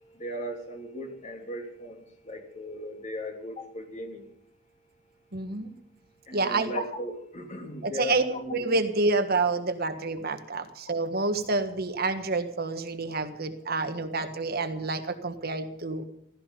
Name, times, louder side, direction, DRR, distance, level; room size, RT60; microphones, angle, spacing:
voice 1, 0.2-4.2 6.3-8.7, left 1 dB, 40° left, 3 dB, 3.0 m, -37 dB
voice 2, 5.3-5.7 6.3-6.7 7.8-8.2 8.5-16.0, right 3 dB, 55° right, 8 dB, 1.6 m, -28 dB
15.5 x 15.0 x 5.3 m, 0.71 s
head